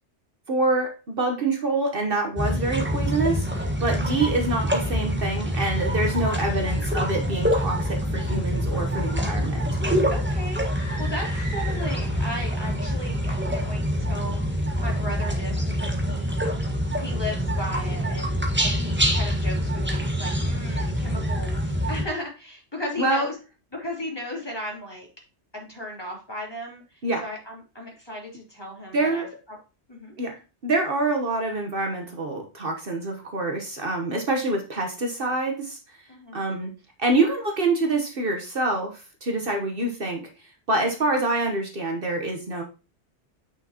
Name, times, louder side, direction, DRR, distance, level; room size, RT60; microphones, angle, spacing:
voice 1, 0.5-9.7 23.0-23.3 27.0-27.2 28.9-29.3 30.2-35.8 36.3-36.7 37.0-40.3 40.7-42.6, right 2 dB, 55° right, 3 dB, 1.3 m, -26 dB
sound 1, 2.4-22.0, equal, 10° right, 1.4 m, -26 dB
voice 2, 3.9-4.3 9.1-16.4 17.0-23.4 23.7-25.1 25.5-29.6 29.9-30.2 36.1-36.4 40.8-41.0, left 1 dB, 20° left, -3 dB, 3.4 m, -36 dB
sound 2, 10.6-12.4, right 1 dB, 35° left, 2.3 m, -40 dB
8.8 x 6.0 x 2.9 m, 0.31 s
omnidirectional pair, 1.2 m